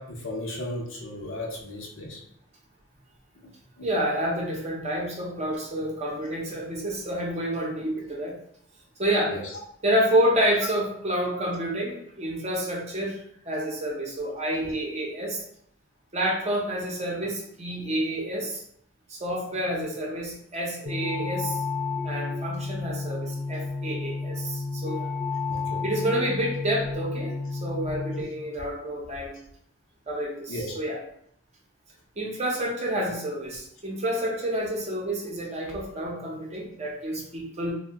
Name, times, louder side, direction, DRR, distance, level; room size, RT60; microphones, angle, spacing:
voice 1, 0.0-2.2 3.8-3.9 9.3-9.4 25.5-25.8 30.5-30.7, left 1 dB, 65° left, -1 dB, 0.7 m, -35 dB
voice 2, 3.8-8.4 9.0-9.3 9.8-13.2 13.4-15.4 16.1-18.6 19.1-21.6 22.0-25.1 25.8-29.3 30.1-31.0 32.2-37.7, right 1 dB, 30° right, -1 dB, 0.7 m, -29 dB
sound 1, 20.9-28.2, left 4 dB, 40° left, 0.4 m, -31 dB
2.7 x 2.1 x 3.3 m, 0.70 s
head